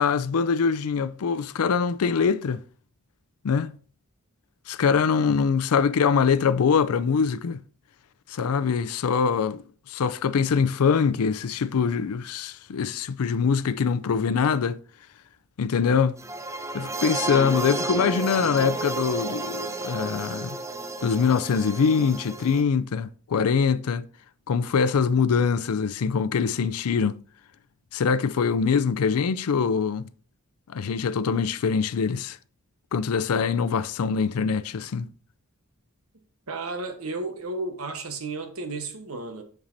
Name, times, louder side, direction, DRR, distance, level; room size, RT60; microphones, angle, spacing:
voice 1, 0.0-2.6 3.4-3.7 4.7-7.6 8.3-9.6 9.9-14.8 15.6-16.2 16.7-20.6 21.0-24.0 24.5-27.2 27.9-30.0 30.7-32.4 32.9-35.1, left 6 dB, 80° left, 0.4 m, -23 dB
sound 1, 16.2-22.6, right 2 dB, 15° right, 0.4 m, -31 dB
voice 2, 36.5-39.4, right 3 dB, 75° right, 1.1 m, -33 dB
7.1 x 6.6 x 2.6 m
head